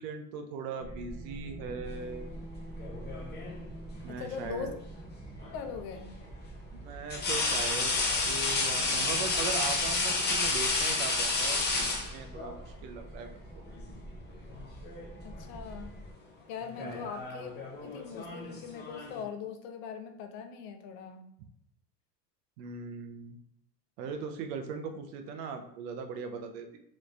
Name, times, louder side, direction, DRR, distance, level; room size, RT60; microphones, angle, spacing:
voice 1, 0.0-2.3 4.0-4.8 6.7-13.6 16.8-17.1 22.6-23.4 24.0-26.8, right 5 dB, 85° right, 6 dB, 0.7 m, -39 dB
sound 1, 0.8-16.1, right 1 dB, 20° right, 1.0 m, -45 dB
sound 2, 2.8-3.7 5.4-5.6 7.1-12.6 13.8-14.0 14.4-15.1 15.4-15.8 16.6-19.2, left 3 dB, 25° left, 0.5 m, -31 dB
voice 2, 4.1-4.8 5.5-6.1 15.2-16.0 16.5-17.5 17.8-21.2, left 7 dB, 85° left, 6 dB, 0.7 m, -41 dB
3.1 x 2.5 x 3.2 m, 0.75 s
supercardioid pair, 120°, 48 cm